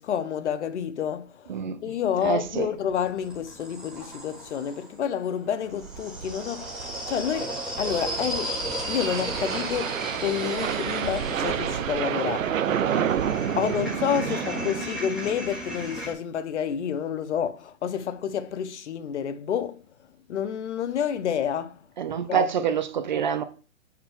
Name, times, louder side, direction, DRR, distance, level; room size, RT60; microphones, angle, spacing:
voice 1, 0.0-1.5 1.8-8.5 8.9-12.5 13.6-19.8 20.3-21.8 22.3-22.7, left 8 dB, 65° left, 0.7 m, -29 dB
voice 2, 2.2-2.7 14.3-14.4 22.0-23.4, right 8 dB, 40° right, 0.5 m, -26 dB
sound 1, 2.5-4.9 5.7-16.1, equal, ahead, 1.1 m, -35 dB
sound 2, 2.5-2.6 2.9-3.0 3.3-3.4 3.9-4.2 5.5-14.9, right 9 dB, 90° right, 0.7 m, -30 dB
5.6 x 4.7 x 3.5 m
hypercardioid pair, 160°, 38 cm